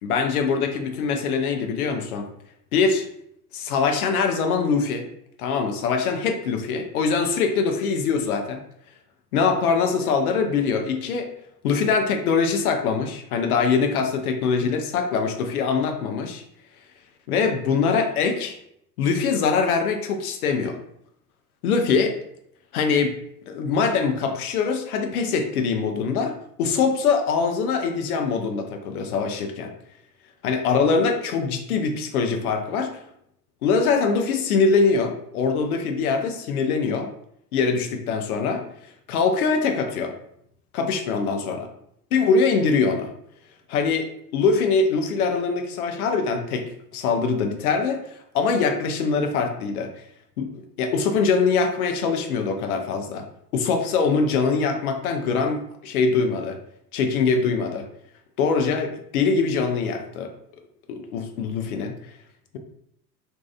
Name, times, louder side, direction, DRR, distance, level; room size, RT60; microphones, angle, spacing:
voice 1, 0.0-2.3 2.7-3.1 3.5-5.1 5.4-8.6 9.3-11.3 11.6-16.4 17.3-18.6 19.0-20.8 21.6-22.1 22.7-23.1 23.5-26.3 26.6-29.7 30.4-32.9 33.6-37.1 37.5-38.6 39.1-40.1 40.7-41.7 42.1-43.1 43.7-49.9 50.4-53.3 53.5-56.6 56.9-57.9 58.4-60.3 60.9-62.0, left 5 dB, 60° left, 5 dB, 0.6 m, -23 dB
2.6 x 2.3 x 2.2 m, 0.73 s
figure-of-eight pair, 75°, 49 cm